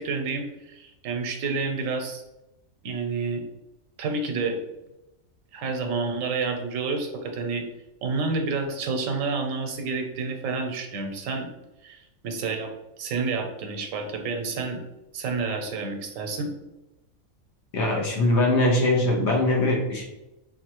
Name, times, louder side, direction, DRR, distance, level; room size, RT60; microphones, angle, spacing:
voice 1, 0.0-2.2 2.8-3.4 4.0-4.6 5.5-7.7 8.0-11.5 11.8-14.8 15.1-16.5, right 4 dB, 75° right, 5 dB, 1.0 m, -29 dB
voice 2, 17.7-20.1, left 1 dB, 60° left, 0 dB, 1.0 m, -22 dB
4.0 x 2.6 x 2.9 m, 0.94 s
omnidirectional pair, 1.4 m